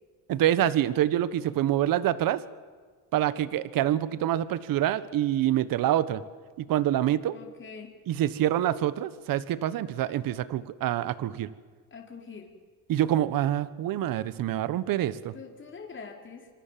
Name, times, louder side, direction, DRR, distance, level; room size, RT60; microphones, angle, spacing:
voice 1, 0.3-2.4 3.1-6.2 6.6-7.3 8.1-11.5 12.9-15.3, right 12 dB, 65° right, 16 dB, 1.4 m, -26 dB
voice 2, 7.3-7.9 11.9-12.5 15.3-16.5, left 5 dB, 30° left, 1 dB, 4.7 m, -44 dB
26.5 x 25.0 x 7.6 m, 1.5 s
cardioid pair, 120°, 37 cm